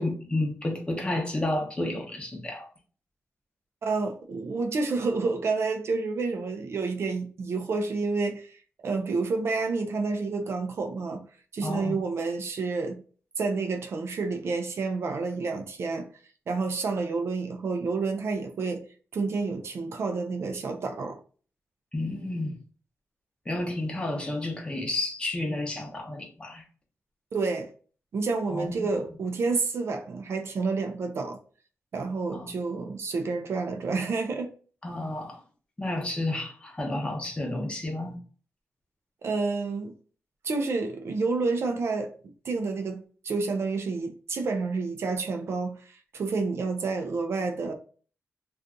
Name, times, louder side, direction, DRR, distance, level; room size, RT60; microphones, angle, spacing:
voice 1, 0.0-2.7 11.6-11.9 21.9-22.6 23.5-26.6 28.5-28.9 32.3-32.5 34.8-35.4 35.8-38.2, left 2 dB, 20° left, 0.8 m, -31 dB
voice 2, 3.8-11.3 11.5-13.0 13.4-16.1 16.5-18.8 19.1-21.2 27.3-27.7 28.1-31.4 31.9-34.5 39.2-39.9 40.4-42.1 42.4-47.7, right 4 dB, 60° right, 0.5 m, -29 dB
2.6 x 2.3 x 3.7 m
wide cardioid pair, 110°, 5 cm